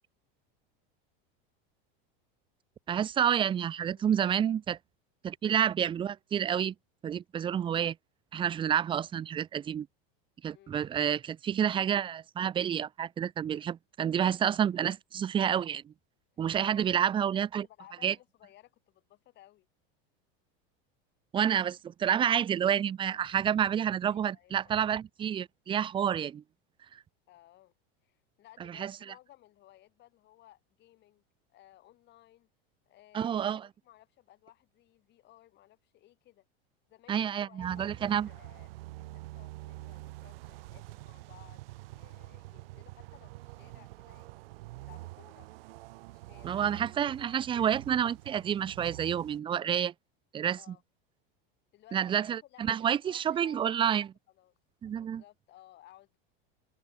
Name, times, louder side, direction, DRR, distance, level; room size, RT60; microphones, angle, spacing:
voice 1, 2.9-4.8 5.2-6.7 7.0-8.0 8.3-9.9 10.4-15.9 16.4-17.6 18.0-18.1 21.3-26.4 28.7-28.9 33.1-33.6 37.1-38.3 46.4-49.9 50.3-50.6 51.9-54.1 54.8-55.2, right 9 dB, 15° right, 0.6 m, -29 dB
voice 2, 14.4-14.7 16.6-19.7 24.1-24.8 27.3-27.7 28.0-31.2 31.5-32.5 32.9-36.5 36.9-38.7 39.0-45.5 46.1-47.3 47.6-47.8 50.6-50.8 51.7-53.6 54.3-54.5 54.9-56.2, left 14 dB, 35° left, 6.1 m, -59 dB
sound 1, 37.6-49.4, right 20 dB, 75° right, 3.4 m, -46 dB
open air
supercardioid pair, 155°, 30 cm